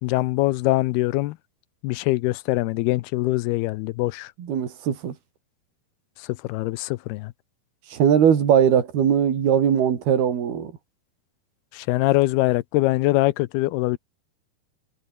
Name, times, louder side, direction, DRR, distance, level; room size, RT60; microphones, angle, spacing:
voice 1, 0.0-1.4 1.8-4.3 6.5-7.3 11.7-14.0, left 19 dB, 80° left, 2.6 m, -23 dB
voice 2, 4.4-5.1 7.9-10.7, right 8 dB, 70° right, 5.2 m, -20 dB
omnidirectional pair, 4.6 m